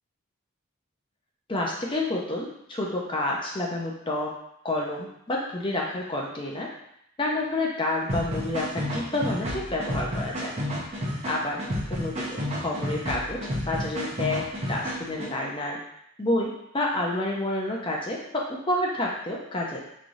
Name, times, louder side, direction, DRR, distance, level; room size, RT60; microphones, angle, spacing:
voice 1, 1.5-4.4 4.6-6.7 7.2-10.5 11.3-11.6 11.9-15.8 16.2-19.8, left 1 dB, 25° left, -2 dB, 0.6 m, -29 dB
sound 1, 8.1-15.3, equal, 30° right, 0.9 m, -31 dB
5.1 x 3.1 x 2.6 m, 0.74 s
head